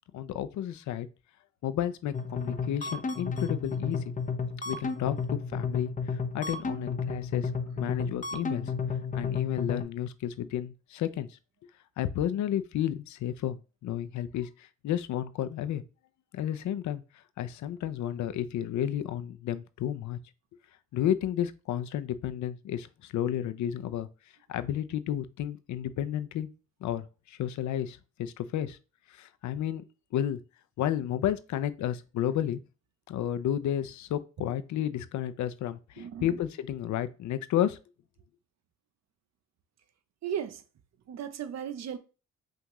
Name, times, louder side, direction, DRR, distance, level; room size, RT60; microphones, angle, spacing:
voice 1, 0.1-1.1 1.6-4.0 4.6-7.5 7.8-8.7 9.1-11.4 12.0-13.6 13.8-15.8 16.3-17.0 17.4-20.2 20.9-24.1 24.5-26.5 26.8-28.8 29.1-29.8 30.1-30.4 30.8-32.6 33.1-37.8, left 11 dB, 70° left, 0.6 m, -32 dB
sound 1, 2.1-9.8, left 5 dB, 25° left, 0.8 m, -32 dB
voice 2, 36.0-36.4 40.2-40.6 41.1-42.0, right 8 dB, 60° right, 0.8 m, -36 dB
5.7 x 2.5 x 3.1 m
cardioid pair, 90°, 30 cm